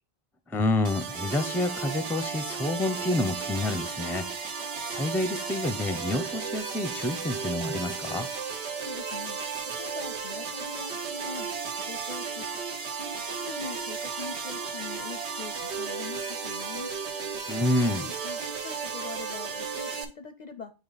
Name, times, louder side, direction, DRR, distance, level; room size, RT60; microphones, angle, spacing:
voice 1, 0.5-4.3 4.9-8.3 17.5-18.1, left 2 dB, 5° left, 10 dB, 0.4 m, -28 dB
sound 1, 0.8-20.0, right 5 dB, 85° right, 1.2 m, -34 dB
voice 2, 8.8-9.4 9.8-12.5 12.9-16.9 17.8-20.7, left 5 dB, 55° left, 9 dB, 0.5 m, -43 dB
8.7 x 3.0 x 3.9 m, 0.31 s
omnidirectional pair, 1.1 m